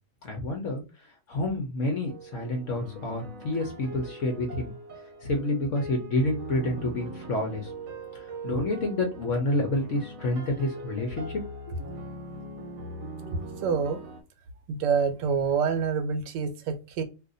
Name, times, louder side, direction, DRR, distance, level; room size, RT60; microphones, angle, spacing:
voice 1, 0.2-4.7 5.2-7.7 8.1-11.4, left 2 dB, 60° left, 3 dB, 0.9 m, -29 dB
sound 1, 2.1-14.2, right 2 dB, 60° right, 1.1 m, -41 dB
voice 2, 13.3-14.0 14.7-17.0, right 6 dB, 80° right, 9 dB, 1.3 m, -27 dB
2.7 x 2.5 x 3.7 m, 0.30 s
omnidirectional pair, 1.9 m